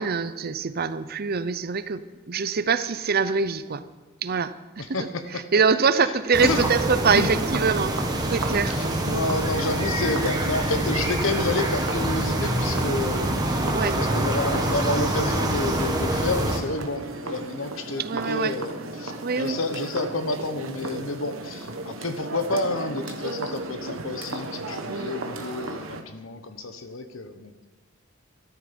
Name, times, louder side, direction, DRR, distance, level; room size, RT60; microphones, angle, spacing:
voice 1, 0.0-2.0 2.3-3.8 4.2-4.5 4.9-5.0 5.5-8.0 8.3-8.7 9.0-9.2 13.7-14.0 18.0-18.5 19.2-19.6 24.9-25.1, right 5 dB, 50° right, 13 dB, 0.6 m, -24 dB
voice 2, 4.8-5.4 6.0-6.1 6.4-6.7 7.1-7.3 8.7-27.7, left 2 dB, 70° left, 9 dB, 1.1 m, -30 dB
sound 1, 6.3-16.6, right 1 dB, 20° right, 1.6 m, -26 dB
sound 2, 6.7-26.0, right 2 dB, 75° right, 1.3 m, -36 dB
14.0 x 12.5 x 5.2 m, 1.2 s
head